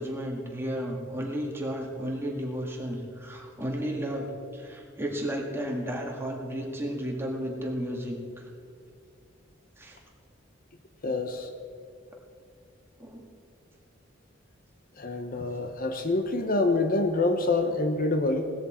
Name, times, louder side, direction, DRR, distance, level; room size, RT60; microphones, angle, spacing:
voice 1, 0.0-8.4 9.8-10.0 13.0-13.3, equal, 15° right, -1 dB, 1.9 m, -33 dB
voice 2, 11.0-11.5 15.0-18.5, left 2 dB, 50° left, 7 dB, 0.9 m, -26 dB
17.5 x 13.0 x 4.4 m, 2.3 s
head